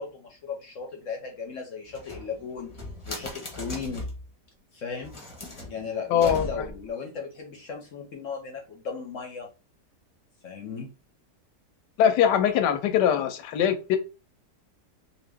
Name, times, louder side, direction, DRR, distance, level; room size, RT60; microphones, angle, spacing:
voice 1, 0.0-2.7 3.1-4.1 4.7-5.3 5.7-9.5 10.4-10.9, left 5 dB, 60° left, 1 dB, 0.9 m, -36 dB
sound 1, 1.9-4.3 5.0-6.9, left 1 dB, 25° left, 0.6 m, -39 dB
voice 2, 6.1-6.7 12.0-14.0, left 9 dB, 85° left, 8 dB, 1.2 m, -22 dB
2.8 x 2.5 x 3.4 m, 0.31 s
omnidirectional pair, 1.8 m